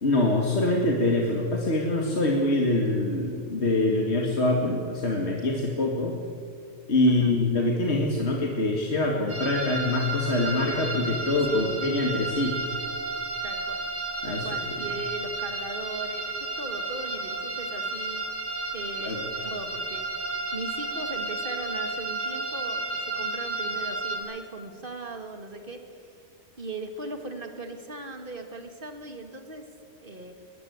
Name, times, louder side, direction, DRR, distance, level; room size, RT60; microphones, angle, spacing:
voice 1, 0.0-6.2 6.9-12.7 14.2-14.5 19.0-19.2, left 2 dB, 60° left, 0 dB, 2.4 m, -24 dB
sound 1, 9.3-24.2, right 2 dB, 75° right, 4.8 m, -32 dB
voice 2, 11.5-11.9 13.4-13.8 14.3-26.1 26.6-29.7 30.0-30.3, right 2 dB, 45° right, 5 dB, 2.6 m, -39 dB
21.5 x 20.0 x 8.1 m, 2.3 s
omnidirectional pair, 1.2 m